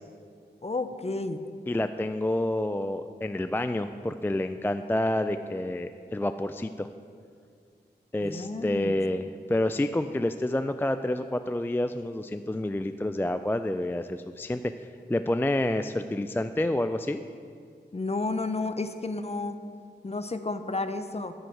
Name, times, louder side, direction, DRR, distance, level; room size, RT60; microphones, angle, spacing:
voice 1, 0.6-1.4 8.2-9.0 17.9-19.6 20.0-21.3, left 3 dB, 35° left, 9 dB, 0.7 m, -31 dB
voice 2, 1.7-6.9 8.1-9.2 9.5-14.6 15.1-17.2, left 1 dB, 10° left, 9 dB, 0.3 m, -28 dB
10.5 x 7.9 x 4.6 m, 2.2 s
cardioid pair, 45°, 19 cm